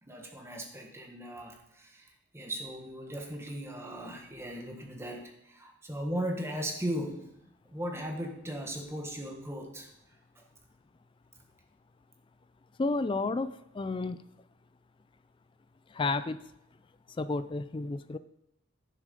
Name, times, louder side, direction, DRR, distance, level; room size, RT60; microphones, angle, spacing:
voice 1, 0.0-7.3 7.6-9.9 10.3-10.4, equal, 10° right, 2 dB, 1.3 m, -37 dB
voice 2, 12.8-14.2 15.9-16.4 17.2-18.2, left 3 dB, 25° left, 14 dB, 0.3 m, -31 dB
11.0 x 6.7 x 5.2 m, 0.80 s
head